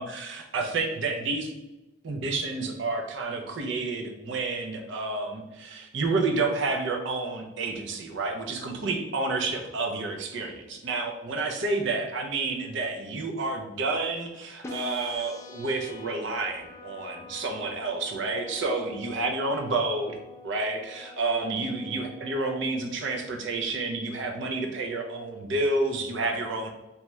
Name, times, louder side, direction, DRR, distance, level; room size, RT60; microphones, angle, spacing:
voice 1, 0.0-1.5 2.0-20.2 20.4-26.7, right 3 dB, 60° right, 3 dB, 0.5 m, -30 dB
sound 1, 14.6-22.6, left 3 dB, 15° left, 0.3 m, -45 dB
2.8 x 2.3 x 3.0 m, 1.0 s
head